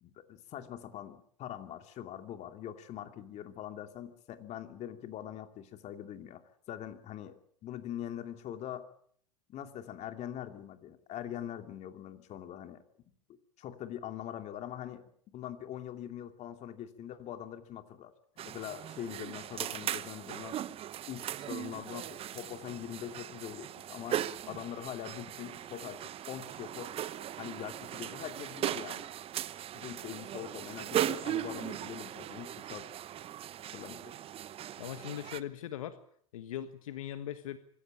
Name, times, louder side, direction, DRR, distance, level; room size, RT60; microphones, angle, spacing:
voice 1, 0.0-6.4 6.7-8.9 9.5-12.8 13.6-18.1 18.4-20.6 21.1-26.9 27.4-29.1 29.7-32.9 33.7-34.1, left 11 dB, 40° left, 8 dB, 2.7 m, -43 dB
sound 1, 18.4-35.4, right 11 dB, 35° right, 1.0 m, -38 dB
voice 2, 34.8-36.0 36.3-37.6, left 11 dB, 70° left, 11 dB, 1.5 m, -40 dB
25.0 x 15.0 x 9.0 m, 0.62 s
hypercardioid pair, 100°, 18 cm